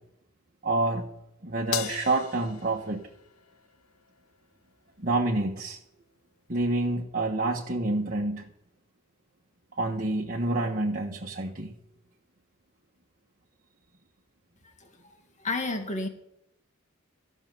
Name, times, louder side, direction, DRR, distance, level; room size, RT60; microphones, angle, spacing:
voice 1, 0.6-1.1 1.4-3.1 5.0-5.8 6.5-8.5 9.8-11.7, right 2 dB, 40° right, -1 dB, 1.2 m, -28 dB
Crash cymbal, 1.7-4.3, left 9 dB, 85° left, 0.8 m, -38 dB
voice 2, 15.4-16.1, left 2 dB, 35° left, 5 dB, 2.1 m, -30 dB
14.5 x 6.4 x 9.3 m, 0.80 s
head